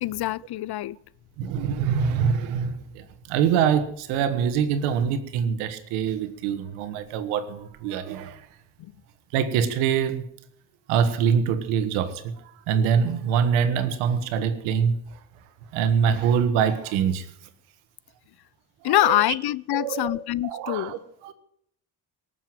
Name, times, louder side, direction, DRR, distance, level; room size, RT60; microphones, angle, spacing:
voice 1, 0.0-1.0 8.8-8.9 18.8-20.9, left 14 dB, 55° left, 0.6 m, -25 dB
voice 2, 1.4-8.5 9.3-10.2 10.9-15.0 15.7-17.3 18.8-19.2 19.7-21.3, right 7 dB, 90° right, 1.6 m, -24 dB
18.5 x 7.2 x 9.1 m
supercardioid pair, 75°, 48 cm